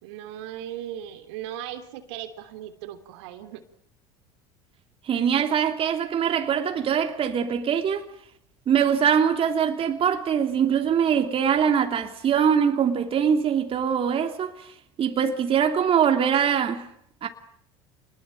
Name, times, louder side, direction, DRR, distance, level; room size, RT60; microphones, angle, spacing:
voice 1, 0.0-3.6, right 11 dB, 75° right, 3.3 m, -37 dB
voice 2, 5.0-8.1 8.7-14.7 15.0-16.9 17.2-17.3, right 8 dB, 40° right, 2.9 m, -23 dB
28.5 x 21.0 x 9.0 m
hypercardioid pair, 85°, 14 cm